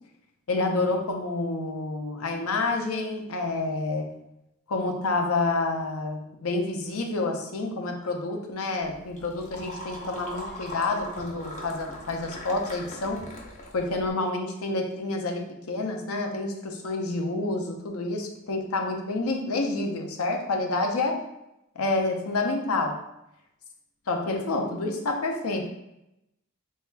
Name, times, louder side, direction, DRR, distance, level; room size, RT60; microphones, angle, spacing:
voice 1, 0.5-4.2 4.7-13.2 13.7-21.2 21.8-23.0 24.1-25.7, left 2 dB, 75° left, 3 dB, 0.6 m, -28 dB
sound 1, 8.8-14.1, left 1 dB, 35° left, 0.7 m, -40 dB
3.3 x 2.7 x 3.3 m, 0.85 s
head